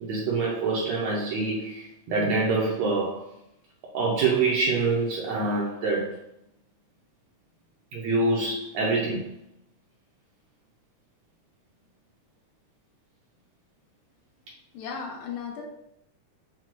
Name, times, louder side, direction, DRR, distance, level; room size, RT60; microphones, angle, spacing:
voice 1, 0.0-3.3 3.9-6.1 7.9-9.4, right 3 dB, 75° right, -4 dB, 1.7 m, -26 dB
voice 2, 14.7-15.6, left 6 dB, 80° left, 1 dB, 2.0 m, -35 dB
5.8 x 2.3 x 3.0 m, 0.76 s
omnidirectional pair, 3.4 m